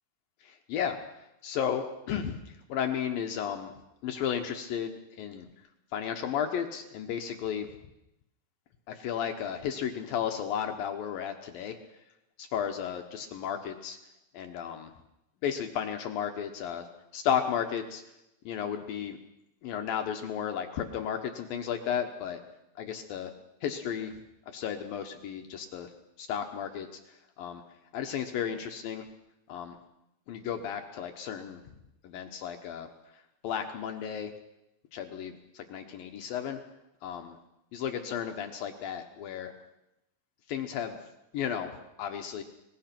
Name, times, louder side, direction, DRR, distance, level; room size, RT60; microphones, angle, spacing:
voice 1, 1.4-2.4 2.7-3.7 4.0-5.5 5.9-7.7 8.9-11.8 12.4-14.0 14.3-14.9 15.4-16.9 17.1-18.0 18.5-19.2 19.6-22.4 22.8-23.3 23.6-24.1 24.5-25.9 26.2-26.9 27.4-27.6 27.9-29.0 29.5-29.8 30.3-31.6 32.0-32.9 33.4-34.3 34.9-36.6 37.0-37.3 37.7-39.5 40.5-41.0 41.3-41.7 42.0-42.4, left 8 dB, 75° left, 5 dB, 2.2 m, -33 dB
24.0 x 20.0 x 5.9 m, 0.87 s
omnidirectional pair, 5.4 m